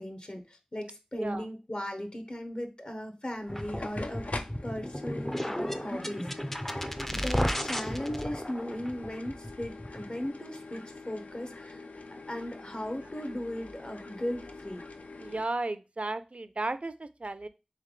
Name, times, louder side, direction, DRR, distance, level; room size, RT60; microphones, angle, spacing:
voice 1, 0.0-4.3 4.6-11.9 12.3-14.8, left 1 dB, 50° left, 5 dB, 0.8 m, -37 dB
sound 1, 3.3-15.5, left 3 dB, 80° left, 0.4 m, -45 dB
sound 2, 3.5-10.3, equal, 15° left, 0.4 m, -34 dB
voice 2, 15.2-17.5, right 2 dB, 60° right, 12 dB, 0.4 m, -34 dB
3.4 x 3.3 x 3.7 m, 0.29 s
wide cardioid pair, 40°, 2 cm